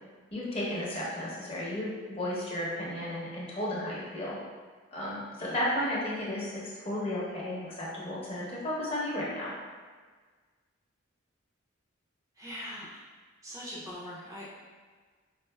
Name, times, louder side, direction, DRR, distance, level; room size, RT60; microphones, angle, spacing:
voice 1, 0.3-4.4 4.9-9.5, left 1 dB, 30° left, -6 dB, 0.7 m, -33 dB
voice 2, 12.4-13.0 13.4-14.5, equal, 15° right, -6 dB, 0.4 m, -42 dB
4.4 x 2.4 x 2.2 m, 1.5 s
head